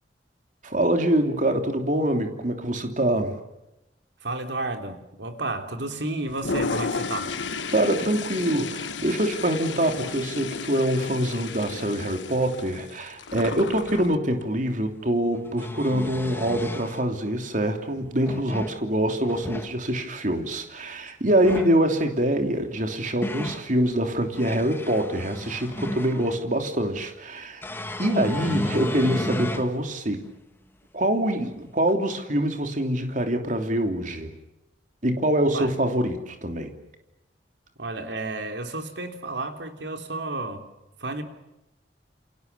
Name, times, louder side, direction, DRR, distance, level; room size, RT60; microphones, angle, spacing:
voice 1, 0.6-3.4 7.7-27.6 28.0-30.2 30.9-34.3 35.0-36.7, right 1 dB, 45° right, 3.1 m, -25 dB
voice 2, 4.2-7.3 35.5-35.7 37.8-40.7 41.0-41.2, right 2 dB, 75° right, 3.2 m, -32 dB
Toilet flush, 6.3-14.2, left 4 dB, 90° left, 1.3 m, -33 dB
sound 1, 14.4-14.5 15.3-17.0 18.0-18.8 19.2-19.7 21.3-21.8 22.7-23.7 24.2-26.4 27.6-29.7 30.3-30.4 31.9-32.0, left 1 dB, 15° left, 1.4 m, -33 dB
28.5 x 27.5 x 7.0 m
head